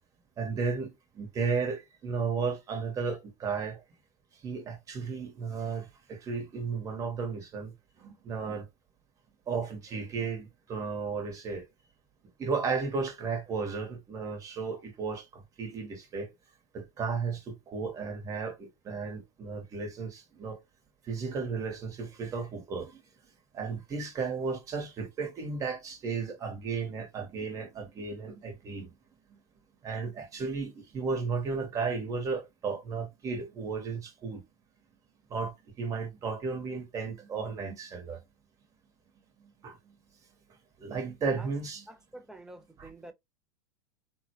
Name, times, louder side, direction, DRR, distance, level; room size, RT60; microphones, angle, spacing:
voice 1, 0.4-3.8 4.4-7.7 8.0-8.7 9.5-11.6 12.4-16.3 16.7-20.6 21.1-23.0 23.5-28.9 29.3-29.4 29.8-34.4 35.3-38.2 39.4-40.0 40.8-41.9 42.8-42.9, right 5 dB, 30° right, 1.2 m, -34 dB
voice 2, 41.9-43.1, right 1 dB, 5° right, 0.5 m, -48 dB
3.8 x 2.1 x 2.8 m
supercardioid pair, 120°, 12 cm